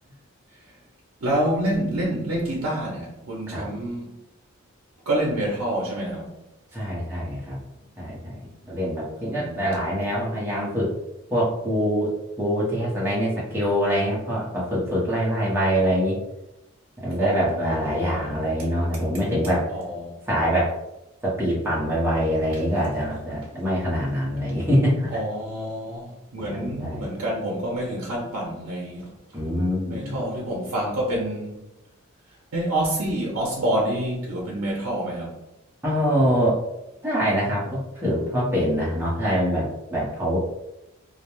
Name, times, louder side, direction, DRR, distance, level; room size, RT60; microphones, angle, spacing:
voice 1, 1.2-4.2 5.1-6.3 9.2-9.8 17.2-18.3 19.7-20.2 25.1-29.1 29.9-31.6 32.5-35.4, right 1 dB, 90° right, 0.5 m, -27 dB
voice 2, 6.7-7.6 8.0-8.4 8.7-10.9 11.3-16.2 17.0-19.7 20.3-20.7 21.2-25.1 26.4-27.1 29.3-30.2 35.8-36.6 37.0-40.4, equal, 10° right, 0.6 m, -24 dB
2.3 x 2.1 x 2.9 m
head